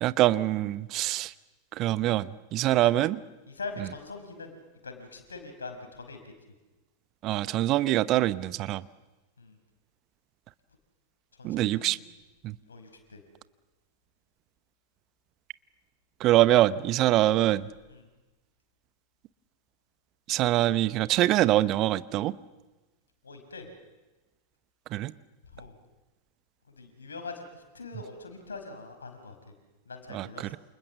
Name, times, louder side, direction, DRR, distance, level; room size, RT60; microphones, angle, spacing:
voice 1, 0.0-1.3 1.7-3.2 3.8-3.9 7.2-8.8 11.4-12.0 12.4-12.5 16.2-17.7 20.3-22.3 24.9-25.1 30.1-30.5, right 15 dB, 35° right, 18 dB, 0.8 m, -24 dB
voice 2, 3.5-6.3 9.4-9.6 11.4-12.0 12.7-13.2 17.9-18.0 23.2-23.7 25.5-25.7 26.7-29.3 29.9-30.5, left 3 dB, 75° left, 7 dB, 5.3 m, -42 dB
29.5 x 28.0 x 7.2 m, 1.2 s
figure-of-eight pair, 90°, 0 cm